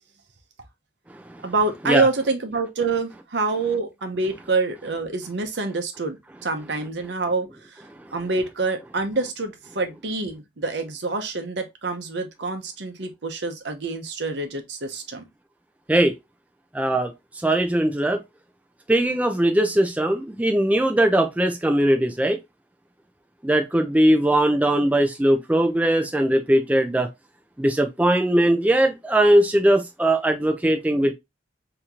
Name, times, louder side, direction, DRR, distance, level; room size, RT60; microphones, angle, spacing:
voice 1, 1.4-6.2 6.4-7.8 8.1-15.2, right 3 dB, 70° right, 0.8 m, -26 dB
voice 2, 16.7-17.1 17.4-18.2 18.9-22.4 23.4-27.1 27.6-31.1, right 1 dB, 10° right, 0.4 m, -20 dB
3.6 x 2.9 x 2.8 m
head